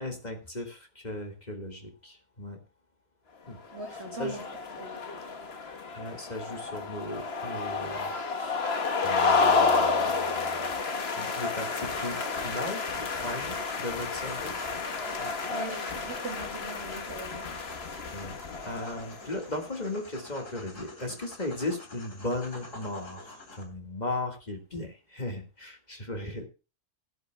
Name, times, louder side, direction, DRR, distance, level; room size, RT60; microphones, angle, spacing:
voice 1, 0.0-2.6 3.5-3.6 3.9-4.4 6.0-8.6 9.0-10.7 11.2-14.5 15.2-15.3 15.7-15.9 18.1-18.4 18.6-26.5, left 2 dB, 30° left, 4 dB, 1.9 m, -37 dB
sound 1, 3.7-19.4, left 4 dB, 50° left, 1.4 m, -30 dB
voice 2, 3.7-4.4 4.8-5.0 15.5-17.5, right 3 dB, 55° right, 4 dB, 2.6 m, -40 dB
sound 2, 10.8-23.6, left 2 dB, 70° left, 3.4 m, -47 dB
18.0 x 10.5 x 2.2 m, 0.31 s
omnidirectional pair, 1.4 m